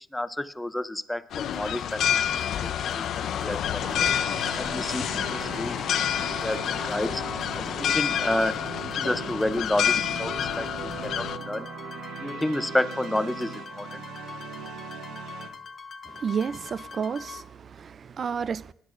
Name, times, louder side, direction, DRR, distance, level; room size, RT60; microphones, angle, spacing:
voice 1, 0.0-4.1 4.6-7.2 7.5-11.7 12.2-14.0, left 1 dB, 10° left, 0.6 m, -31 dB
sound 1, 1.3-11.4, left 9 dB, 75° left, 0.5 m, -28 dB
sound 2, 1.5-17.4, left 5 dB, 45° left, 0.8 m, -43 dB
sound 3, 3.8-15.5, right 6 dB, 85° right, 1.0 m, -40 dB
voice 2, 16.1-18.7, right 6 dB, 50° right, 0.4 m, -31 dB
19.0 x 10.5 x 2.5 m
cardioid pair, 90°, 0 cm